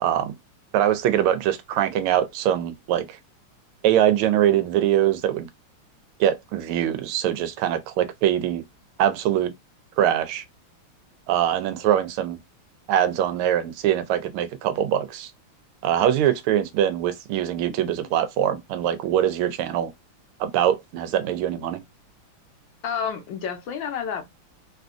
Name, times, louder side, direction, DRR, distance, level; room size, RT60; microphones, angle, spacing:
voice 1, 0.0-0.3 0.7-3.2 3.8-5.5 6.2-8.6 9.0-9.5 10.0-10.4 11.3-12.4 12.9-15.3 15.8-19.9 20.4-21.8, right 11 dB, 85° right, 1.5 m, -23 dB
voice 2, 17.7-18.1 22.8-24.3, left 7 dB, 70° left, 1.3 m, -31 dB
3.6 x 2.4 x 2.4 m
omnidirectional pair, 2.3 m